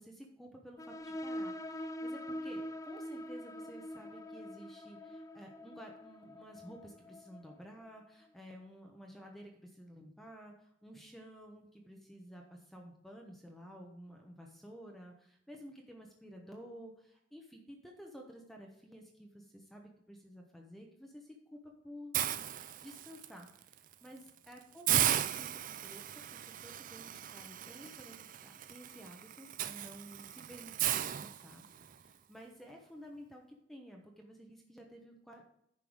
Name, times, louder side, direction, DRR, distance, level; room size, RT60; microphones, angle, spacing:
voice 1, 0.0-22.2 22.8-26.1 26.4-35.5, equal, ahead, 1 dB, 0.9 m, -52 dB
sound 1, 0.8-8.1, equal, 20° left, 0.5 m, -44 dB
Hiss, 22.1-23.3 23.7-23.9 24.3-24.4 24.9-31.9, right 11 dB, 45° right, 0.4 m, -36 dB
10.0 x 5.6 x 4.9 m, 0.75 s
head